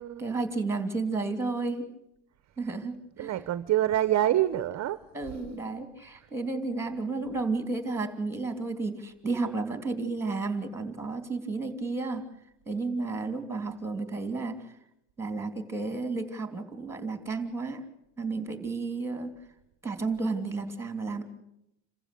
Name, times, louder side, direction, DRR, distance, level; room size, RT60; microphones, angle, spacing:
voice 1, 0.2-1.9 2.6-3.3 5.1-12.3 12.7-14.6 15.2-17.8 18.2-19.3 19.8-21.2, right 3 dB, 5° right, 2.9 m, -32 dB
voice 2, 3.2-5.0 5.3-5.4 6.2-6.3, right 13 dB, 35° right, 0.7 m, -26 dB
27.5 x 15.0 x 8.3 m
cardioid pair, 130°, 45 cm